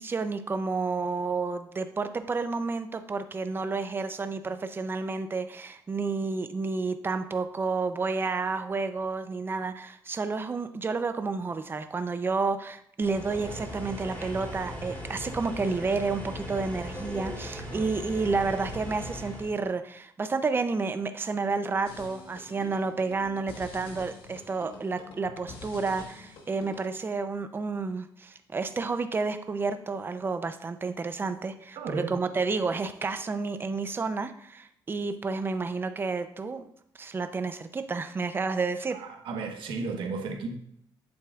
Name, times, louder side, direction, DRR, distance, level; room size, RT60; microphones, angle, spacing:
voice 1, 0.0-36.7 37.0-39.0, right 4 dB, 25° right, 9 dB, 0.6 m, -30 dB
sound 1, 13.0-19.5, equal, 20° left, 3.1 m, -38 dB
sound 2, 21.9-26.9, left 4 dB, 80° left, 1.4 m, -46 dB
voice 2, 31.7-32.2 38.9-40.5, right 4 dB, 75° right, 3 dB, 1.3 m, -34 dB
8.7 x 7.4 x 2.4 m, 0.71 s
cardioid pair, 105°, 8 cm